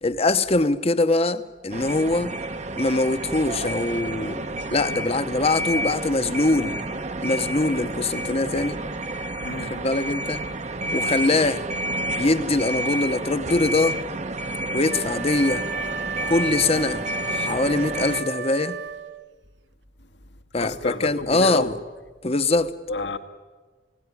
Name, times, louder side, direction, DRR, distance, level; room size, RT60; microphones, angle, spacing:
voice 1, 0.0-2.4 2.8-4.4 4.7-6.8 7.2-8.8 9.6-10.4 10.9-11.7 12.2-14.0 14.7-15.6 16.3-18.8 20.5-21.8 22.2-22.7, left 2 dB, 35° left, 1.0 m, -23 dB
sound 1, 1.7-18.2, right 1 dB, 40° right, 1.0 m, -30 dB
voice 2, 9.4-9.7 20.6-21.7 22.9-23.2, left 2 dB, 75° left, 1.7 m, -29 dB
Wind instrument woodwind instrument, 14.9-19.3, right 5 dB, 85° right, 0.8 m, -33 dB
29.5 x 18.5 x 9.8 m
head